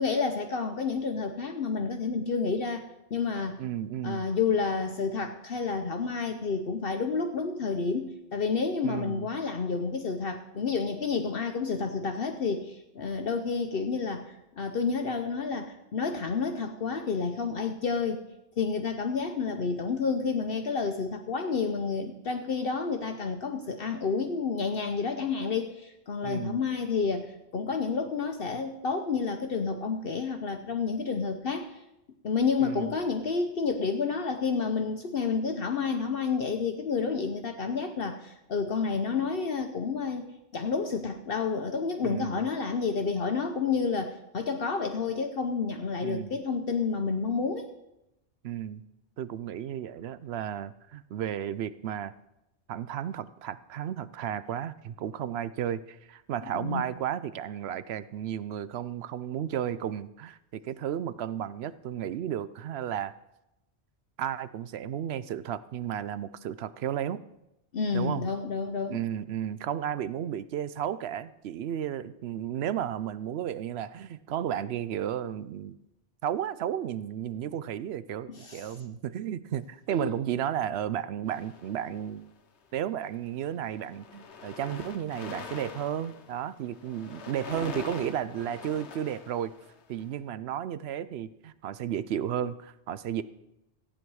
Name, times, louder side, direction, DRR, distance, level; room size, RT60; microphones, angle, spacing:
voice 1, 0.0-2.8 3.1-3.6 4.0-18.2 18.6-31.8 32.2-47.7 56.5-56.8 67.7-69.0 78.3-78.8 79.9-80.1, left 5 dB, 55° left, 5 dB, 0.9 m, -30 dB
voice 2, 3.6-4.3 8.8-9.3 26.2-26.6 32.6-32.9 42.0-42.4 46.0-46.4 48.4-48.8 49.2-52.1 52.7-63.1 64.2-67.2 67.9-68.3 68.9-75.8 76.2-82.3 82.7-89.5 89.9-93.2, right 10 dB, 70° right, 15 dB, 0.8 m, -33 dB
sound 1, 81.3-82.3 83.0-83.3 83.5-90.0, left 5 dB, 70° left, 1.2 m, -44 dB
15.0 x 8.8 x 4.7 m, 0.90 s
omnidirectional pair, 1.2 m